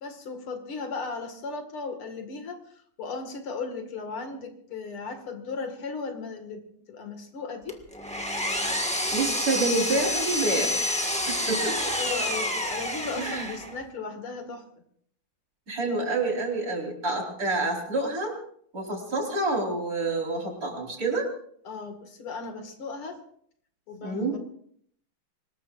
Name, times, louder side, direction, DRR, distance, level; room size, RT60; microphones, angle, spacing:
voice 1, 0.0-6.6 6.9-7.8 12.0-14.6 21.6-23.2 23.9-24.4, left 4 dB, 90° left, 5 dB, 2.9 m, -36 dB
Power tool, 7.7-13.8, left 1 dB, 5° left, 1.4 m, -28 dB
voice 2, 9.1-11.8 13.2-13.5 15.7-18.4 18.7-21.3 24.0-24.4, right 2 dB, 40° right, -1 dB, 5.1 m, -28 dB
25.0 x 20.5 x 2.6 m, 0.63 s
omnidirectional pair, 2.3 m